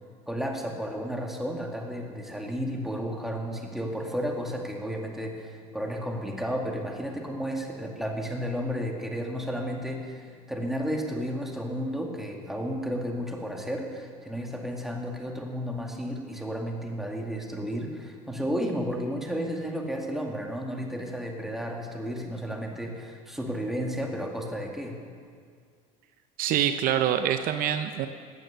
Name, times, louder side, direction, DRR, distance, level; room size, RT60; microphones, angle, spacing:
voice 1, 0.3-25.0, equal, ahead, 1 dB, 2.3 m, -32 dB
voice 2, 26.4-28.1, right 10 dB, 60° right, 9 dB, 0.7 m, -25 dB
15.0 x 9.2 x 6.6 m, 2.1 s
supercardioid pair, 90°, 17 cm